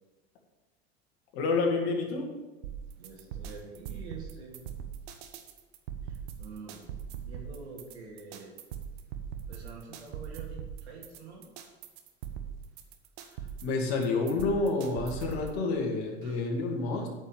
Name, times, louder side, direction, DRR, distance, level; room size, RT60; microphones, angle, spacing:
voice 1, 1.3-2.3 13.6-17.1, left 3 dB, 65° left, 1 dB, 2.3 m, -29 dB
sound 1, 2.6-15.6, right 8 dB, 70° right, 1.2 m, -41 dB
voice 2, 3.0-4.6 6.0-6.8 7.1-8.5 9.5-11.5 16.2-16.4, right 4 dB, 85° right, -2 dB, 2.6 m, -46 dB
8.9 x 5.5 x 7.0 m, 1.1 s
hypercardioid pair, 90°, 32 cm